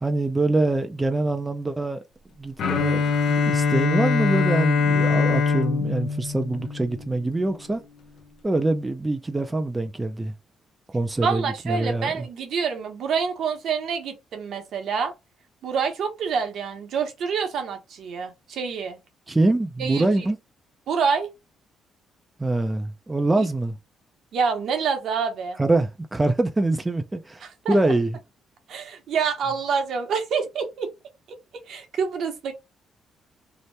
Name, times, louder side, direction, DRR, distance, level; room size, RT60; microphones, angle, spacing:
voice 1, 0.0-2.0 2.4-7.8 8.4-10.3 10.9-12.3 19.3-20.4 22.4-23.8 25.6-28.2, right 2 dB, 15° right, 0.4 m, -24 dB
Bowed string instrument, 2.6-7.4, left 5 dB, 70° left, 0.5 m, -23 dB
voice 2, 11.2-15.1 15.6-19.0 19.8-20.1 20.9-21.3 24.3-25.6 27.4-27.9 28.7-30.9 31.7-32.5, right 6 dB, 70° right, 0.8 m, -27 dB
2.8 x 2.0 x 3.2 m
cardioid pair, 90°, 0 cm